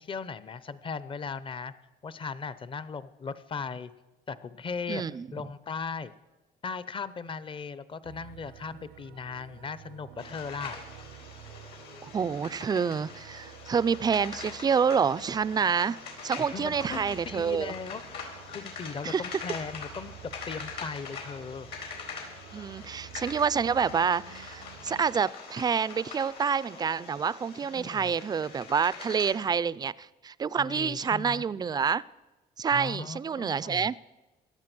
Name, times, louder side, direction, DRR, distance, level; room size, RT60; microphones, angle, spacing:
voice 1, 0.0-1.7 2.0-3.9 4.3-5.0 5.3-6.1 6.6-10.8 16.5-18.2 18.5-20.1 20.5-21.7 27.6-28.1 30.5-31.4 32.7-33.9, left 5 dB, 30° left, 16 dB, 0.7 m, -38 dB
voice 2, 4.9-5.3 12.0-16.0 16.2-17.7 19.0-19.2 22.5-32.0 32.6-34.0, right 6 dB, 25° right, 19 dB, 0.4 m, -28 dB
sound 1, 8.0-25.2, right 13 dB, 80° right, 0.7 m, -50 dB
sound 2, 10.2-29.3, left 5 dB, 70° left, 4.3 m, -44 dB
17.5 x 12.0 x 6.1 m, 1.1 s
cardioid pair, 110°, 17 cm